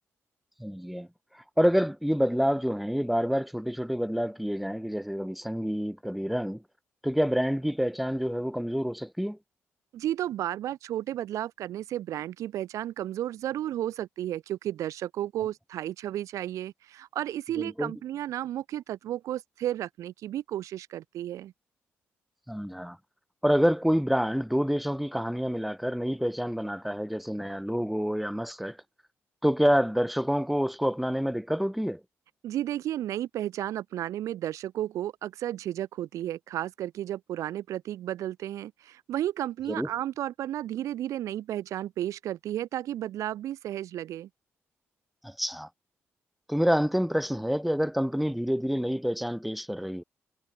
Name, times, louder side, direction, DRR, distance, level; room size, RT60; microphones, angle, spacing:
voice 1, 0.6-1.1 1.3-6.6 7.0-9.4 17.6-17.9 22.5-23.0 23.4-28.8 29.4-32.0 39.7-39.9 45.2-45.7 46.5-50.0, equal, ahead, 4.0 m, -27 dB
voice 2, 9.9-21.5 32.4-44.3, right 12 dB, 80° right, 2.8 m, -33 dB
supercardioid pair, 50°, 5 cm